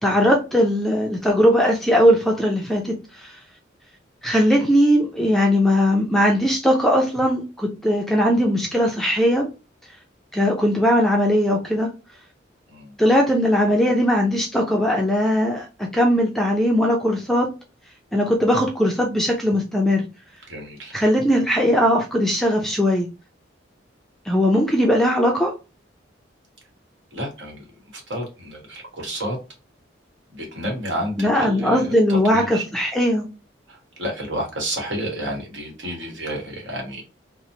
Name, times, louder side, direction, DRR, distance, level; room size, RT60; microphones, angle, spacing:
voice 1, 0.0-3.4 4.2-9.5 10.3-11.9 13.0-17.5 18.1-20.0 20.9-23.1 24.3-25.5 31.2-33.3, equal, ahead, 1 dB, 0.4 m, -19 dB
voice 2, 20.5-20.9 27.1-27.7 27.9-29.4 30.3-32.7 33.7-37.0, right 1 dB, 70° right, 0 dB, 1.2 m, -30 dB
3.0 x 2.1 x 2.6 m, 0.29 s
head